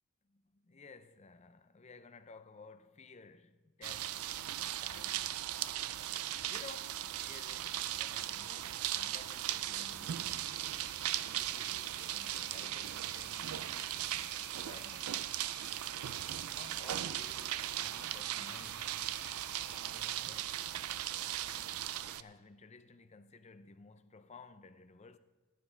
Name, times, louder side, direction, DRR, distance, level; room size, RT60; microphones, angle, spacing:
voice 1, 0.2-5.5 6.4-10.5 11.2-15.2 16.4-19.1 19.7-20.9 22.0-25.2, left 4 dB, 30° left, 0.5 m, -56 dB
sound 1, 3.8-22.2, right 12 dB, 80° right, 0.4 m, -38 dB
sound 2, 10.3-19.8, right 3 dB, 55° right, 1.9 m, -54 dB
20.0 x 9.4 x 3.3 m
head